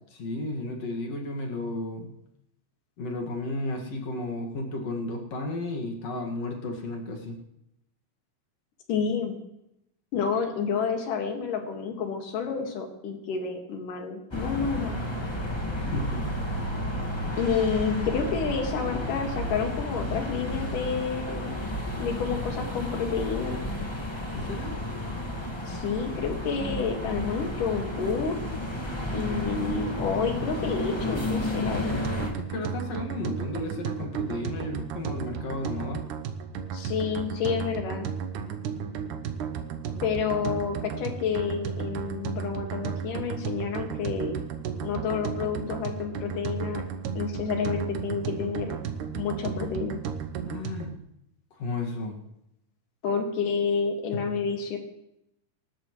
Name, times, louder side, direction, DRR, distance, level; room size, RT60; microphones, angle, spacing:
voice 1, 0.1-2.1 3.0-7.4 15.8-16.2 24.3-24.7 32.4-36.0 50.5-50.9 51.6-52.1, left 2 dB, 55° left, 1 dB, 3.0 m, -33 dB
voice 2, 8.9-9.4 10.1-15.0 17.4-21.5 22.0-23.6 25.7-28.4 29.1-32.0 36.7-38.1 40.0-44.4 44.8-46.8 47.2-48.8 49.1-50.0 53.0-54.8, left 6 dB, 80° left, 3 dB, 3.5 m, -29 dB
sound 1, 14.3-32.3, left 1 dB, 15° left, 1.0 m, -32 dB
sound 2, 31.8-50.9, right 7 dB, 75° right, 2.4 m, -34 dB
26.5 x 12.5 x 3.2 m, 0.82 s
omnidirectional pair, 3.7 m